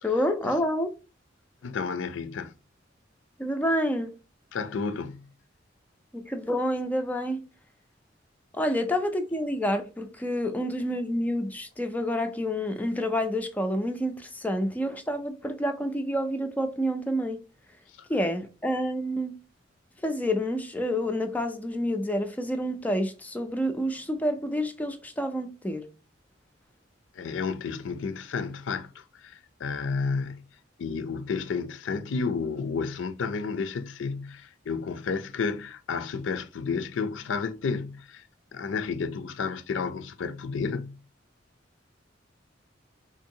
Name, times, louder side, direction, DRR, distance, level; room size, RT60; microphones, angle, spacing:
voice 1, 0.0-0.9 3.4-4.2 6.1-7.4 8.5-17.4 18.1-19.4 20.0-25.9, equal, 10° left, 0.3 m, -28 dB
voice 2, 1.6-2.5 4.5-5.3 18.0-18.1 27.1-30.4 30.8-38.2 38.5-41.0, left 5 dB, 75° left, 0.4 m, -31 dB
3.7 x 2.7 x 2.7 m
head